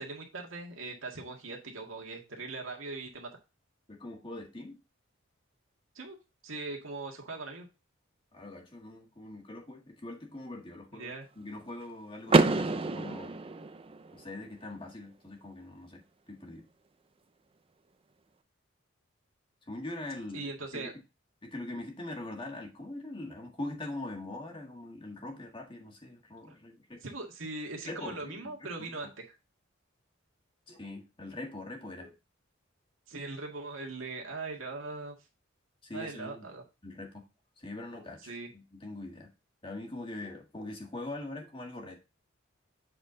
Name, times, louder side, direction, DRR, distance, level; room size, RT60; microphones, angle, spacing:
voice 1, 0.0-3.3 6.0-6.2 6.4-7.7 10.9-11.3 20.3-20.9 26.5-26.6 27.0-29.3 33.1-35.2 35.9-36.6 38.3-38.5, right 3 dB, 85° right, 1 dB, 1.9 m, -40 dB
voice 2, 3.9-4.8 8.3-13.4 14.1-16.7 19.7-20.5 20.7-20.9 21.4-27.0 27.9-28.5 30.7-32.1 35.8-36.5 36.8-37.2 37.6-39.3 39.6-42.0, left 2 dB, 25° left, 1 dB, 1.7 m, -42 dB
Car / Door, 12.3-14.2, right 3 dB, 30° right, 0.4 m, -27 dB
7.8 x 4.2 x 3.8 m, 0.28 s
head